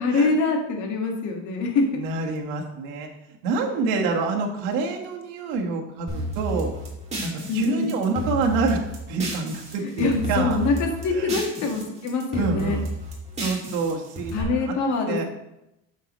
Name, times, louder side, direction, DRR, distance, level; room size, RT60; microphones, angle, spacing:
voice 1, 0.0-2.0 7.5-7.9 10.0-12.8 14.3-15.2, left 3 dB, 60° left, 2 dB, 1.8 m, -24 dB
voice 2, 1.9-3.1 3.4-6.7 7.2-8.8 9.1-10.6 11.1-11.4 12.3-12.8 13.4-14.8 15.1-15.2, right 4 dB, 80° right, 1 dB, 1.5 m, -27 dB
sound 1, 6.1-9.7 10.0-11.8 12.1-14.4, right 1 dB, 20° right, 2.4 m, -31 dB
9.3 x 6.7 x 3.1 m, 0.87 s
cardioid pair, 150°, 33 cm